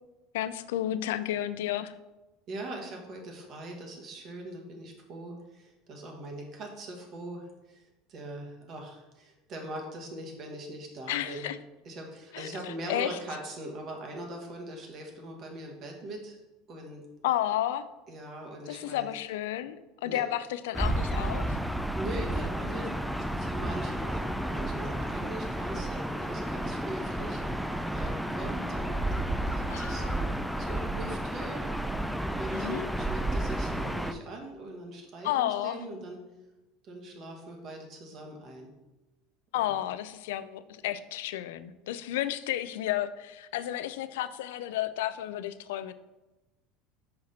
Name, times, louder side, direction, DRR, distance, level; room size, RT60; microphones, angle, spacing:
voice 1, 0.3-1.9 11.1-11.6 12.3-12.5 12.9-13.2 17.2-17.8 18.7-19.8 20.0-21.6 29.7-30.1 32.5-32.9 35.2-35.8 39.5-45.9, left 12 dB, 80° left, 14 dB, 0.4 m, -32 dB
voice 2, 2.5-7.8 8.1-11.5 11.8-16.4 16.7-17.0 18.1-19.1 20.0-20.2 21.9-22.9 23.4-27.4 27.9-30.2 30.6-31.7 32.4-36.2 36.8-38.7 39.5-39.8, right 1 dB, 45° right, 1 dB, 1.7 m, -41 dB
Gull seagull / Ocean, 20.7-34.1, right 1 dB, ahead, 0.4 m, -31 dB
5.9 x 4.9 x 4.2 m, 1.1 s
supercardioid pair, 105°, 0 cm